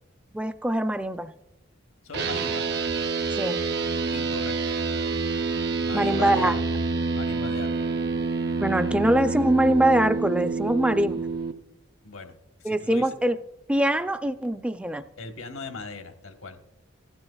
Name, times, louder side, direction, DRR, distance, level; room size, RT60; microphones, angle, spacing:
voice 1, 0.3-1.3 3.3-3.7 5.9-6.5 8.6-11.2 12.6-13.4 13.7-15.0, right 1 dB, 5° right, 10 dB, 0.4 m, -23 dB
voice 2, 2.0-2.7 4.1-4.8 5.8-6.8 7.1-7.9 12.0-12.3 12.6-13.1 15.2-16.6, left 3 dB, 80° left, 5 dB, 1.2 m, -38 dB
sound 1, 2.1-11.5, right 4 dB, 50° right, 0.7 m, -27 dB
16.0 x 12.0 x 2.3 m, 0.98 s
head